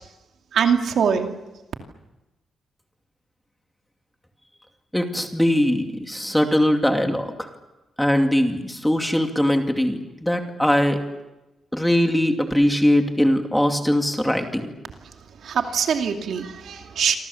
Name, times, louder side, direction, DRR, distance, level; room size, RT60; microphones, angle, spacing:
voice 1, 0.5-1.3 15.4-17.2, right 7 dB, 65° right, 4 dB, 2.6 m, -22 dB
voice 2, 4.9-7.5 8.0-11.0 11.7-14.7, equal, 5° left, 4 dB, 2.5 m, -21 dB
28.5 x 26.0 x 7.2 m, 1.0 s
wide cardioid pair, 165°, 0 cm